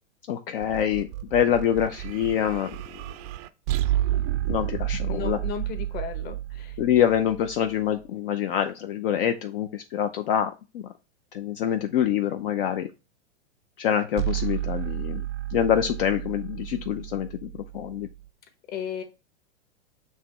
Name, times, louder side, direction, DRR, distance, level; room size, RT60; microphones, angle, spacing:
voice 1, 0.3-2.8 4.5-5.4 6.8-10.5 11.3-12.9 13.8-15.2 15.5-17.5 17.7-18.1, left 9 dB, 55° left, 0.7 m, -25 dB
sound 1, 0.6-7.9 14.2-18.3, right 13 dB, 35° right, 0.5 m, -31 dB
voice 2, 5.1-6.8 18.7-19.0, left 8 dB, 25° left, 1.1 m, -35 dB
7.5 x 3.0 x 4.3 m
hypercardioid pair, 130°, 35 cm